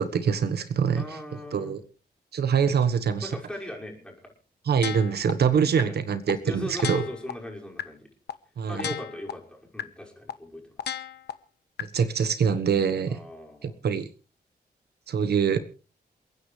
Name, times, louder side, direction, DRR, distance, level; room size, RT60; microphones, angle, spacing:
voice 1, 0.0-1.0 1.5-1.8 2.3-3.3 4.7-7.0 8.6-8.9 11.8-13.2 13.6-14.1 15.1-15.6, right 6 dB, 75° right, 11 dB, 1.3 m, -24 dB
voice 2, 1.0-1.8 3.2-4.3 5.6-6.0 6.4-8.1 8.7-10.7 13.1-13.8, left 1 dB, 5° left, -1 dB, 5.7 m, -39 dB
sound 1, 4.8-5.3 5.8-5.9 6.3-6.4 6.8-7.3 7.8-7.9 8.3-8.4 8.8-9.3 9.8-9.9 10.3-10.4 10.8-11.3 11.8-11.9, left 9 dB, 80° left, 1.2 m, -32 dB
29.0 x 9.7 x 3.3 m, 0.38 s
wide cardioid pair, 105°, 17 cm